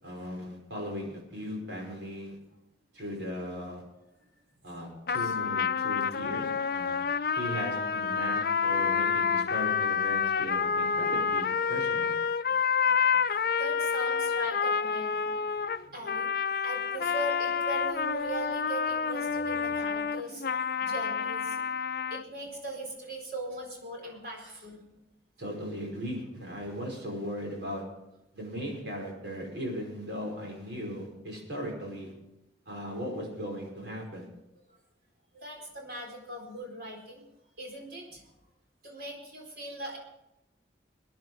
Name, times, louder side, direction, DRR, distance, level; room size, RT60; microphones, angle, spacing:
voice 1, 0.0-2.4 2.9-3.8 4.6-7.1 7.3-12.1 25.4-27.8 28.3-32.1 32.7-34.3, equal, 75° right, 0 dB, 5.3 m, -37 dB
sound 1, 5.1-22.2, left 6 dB, 55° left, 0.5 m, -28 dB
voice 2, 12.8-13.2 13.6-16.3 16.6-20.5 20.8-21.7 22.0-24.8 26.5-26.6 35.3-37.2 37.6-38.3 38.8-40.0, right 1 dB, 55° right, 0 dB, 4.2 m, -40 dB
21.0 x 10.5 x 4.8 m, 0.90 s
head